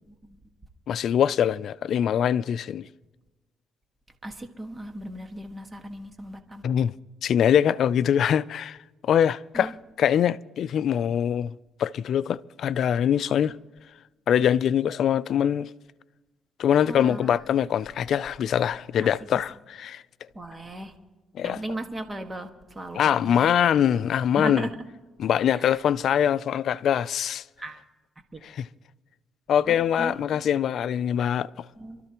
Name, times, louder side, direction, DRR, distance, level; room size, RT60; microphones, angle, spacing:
voice 1, 0.1-0.4 4.2-6.6 9.5-9.7 13.3-13.4 16.9-17.4 19.0-19.1 20.3-20.9 21.4-23.6 24.4-24.9 25.5-25.8 27.6-27.8 28.3-28.4 29.7-30.2 31.8-32.0, right 1 dB, 20° right, 1.6 m, -37 dB
voice 2, 0.9-2.8 6.6-6.9 7.2-8.8 9.0-9.7 10.0-11.5 11.8-13.6 14.3-15.7 16.6-20.0 21.3-21.6 22.9-24.7 25.2-27.4 28.4-28.7 29.5-31.7, left 9 dB, 65° left, 0.4 m, -23 dB
27.0 x 13.0 x 3.0 m
cardioid pair, 90°, 0 cm